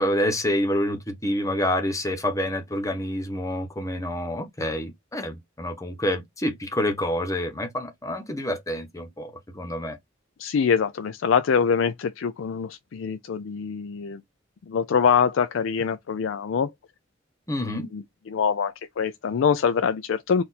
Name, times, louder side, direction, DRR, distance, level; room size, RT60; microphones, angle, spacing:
voice 1, 0.0-10.0 17.5-17.9, left 1 dB, 15° left, 1.0 m, -27 dB
voice 2, 10.4-14.2 14.7-16.7 17.6-20.4, left 6 dB, 75° left, 0.4 m, -24 dB
4.2 x 2.5 x 4.0 m
head